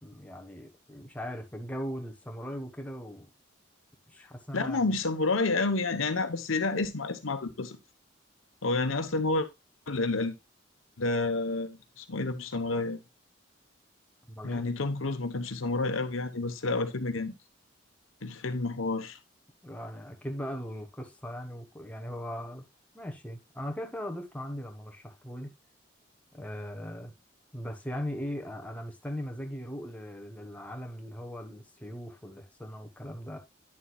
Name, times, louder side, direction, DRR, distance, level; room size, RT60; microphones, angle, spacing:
voice 1, 0.0-3.3 4.1-4.9 14.3-14.6 19.6-22.6 22.9-25.5 26.3-27.1 27.5-33.4, equal, 5° left, 1.2 m, -39 dB
voice 2, 4.5-7.8 8.6-9.5 9.9-10.3 11.0-13.0 14.4-17.3 18.2-19.2, left 3 dB, 80° left, 1.0 m, -29 dB
10.0 x 7.2 x 2.3 m
head